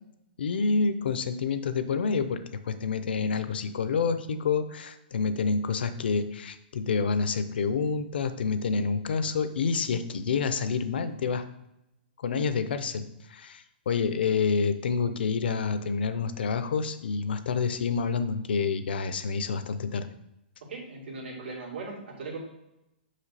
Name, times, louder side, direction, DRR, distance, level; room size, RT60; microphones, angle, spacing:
voice 1, 0.4-11.4 12.2-20.1, left 5 dB, 65° left, 11 dB, 0.6 m, -28 dB
voice 2, 20.7-22.4, right 3 dB, 85° right, -2 dB, 2.4 m, -38 dB
5.8 x 5.0 x 4.2 m, 0.88 s
hypercardioid pair, 175°, 6 cm